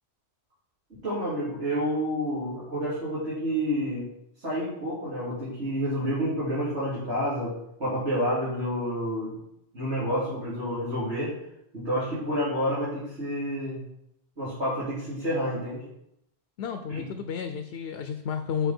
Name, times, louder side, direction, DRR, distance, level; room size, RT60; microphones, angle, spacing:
voice 1, 1.0-4.1 4.4-7.5 7.8-9.4 9.7-11.3 11.7-13.8 14.4-15.8 16.9-17.0, equal, 90° right, -11 dB, 3.6 m, -29 dB
voice 2, 16.6-18.7, left 7 dB, 70° left, 8 dB, 0.8 m, -31 dB
8.0 x 5.4 x 4.3 m, 0.79 s
omnidirectional pair, 1.1 m